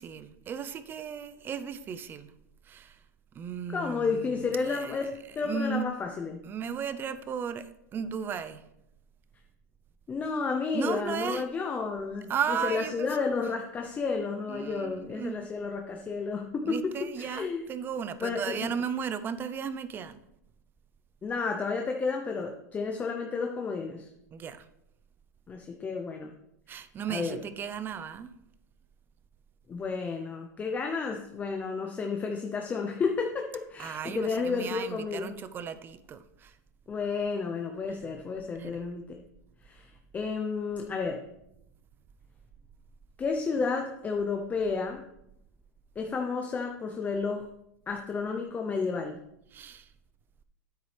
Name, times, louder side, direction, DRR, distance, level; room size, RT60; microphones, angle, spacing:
voice 1, 0.0-2.3 2.7-3.0 3.4-5.0 5.4-5.9 6.4-8.6 10.7-11.5 12.3-13.2 14.5-15.4 16.7-20.2 24.3-24.7 26.7-28.3 33.8-36.5 38.6-38.7 49.5-49.9, right 7 dB, 20° right, 0.5 m, -35 dB
voice 2, 3.7-6.4 10.1-12.3 12.6-17.7 18.2-18.7 21.2-24.1 25.5-26.3 27.1-27.4 29.7-35.3 36.9-39.2 39.6-41.2 43.2-45.0 46.0-47.5 47.9-49.2, left 4 dB, 15° left, 0.6 m, -31 dB
9.2 x 8.2 x 3.3 m
supercardioid pair, 140°, 9 cm